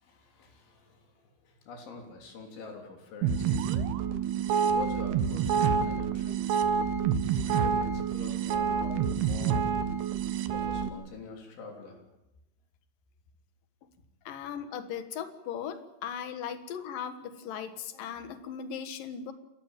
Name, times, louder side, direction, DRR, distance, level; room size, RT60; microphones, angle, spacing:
voice 1, 0.0-3.6 4.7-6.4 7.4-9.7 10.5-12.0, left 4 dB, 80° left, 3 dB, 5.7 m, -45 dB
sound 1, 3.2-10.9, right 7 dB, 70° right, 3.0 m, -28 dB
voice 2, 14.3-19.3, left 8 dB, 60° left, 10 dB, 2.6 m, -38 dB
28.0 x 14.0 x 9.0 m, 0.93 s
omnidirectional pair, 5.3 m